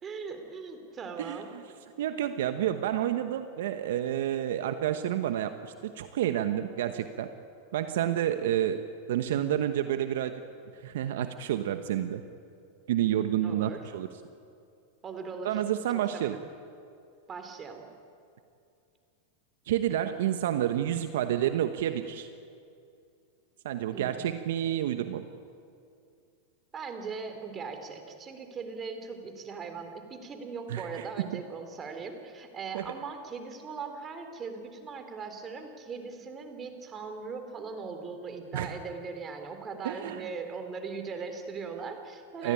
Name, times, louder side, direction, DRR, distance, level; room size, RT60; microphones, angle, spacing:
voice 1, 0.0-1.5 13.4-13.8 15.0-15.6 15.9-16.4 17.3-17.9 23.9-24.4 26.7-42.5, right 5 dB, 25° right, 5 dB, 3.8 m, -40 dB
voice 2, 1.2-1.6 2.0-7.3 7.7-8.8 9.1-10.3 10.7-12.2 12.9-14.1 15.4-16.4 19.7-22.3 23.6-25.3 30.7-31.1 31.3-31.4 32.7-32.9 38.5-38.8 39.8-40.2 42.4-42.5, right 11 dB, 70° right, 8 dB, 1.1 m, -29 dB
30.0 x 13.5 x 10.0 m, 2.5 s
hypercardioid pair, 110°, 0 cm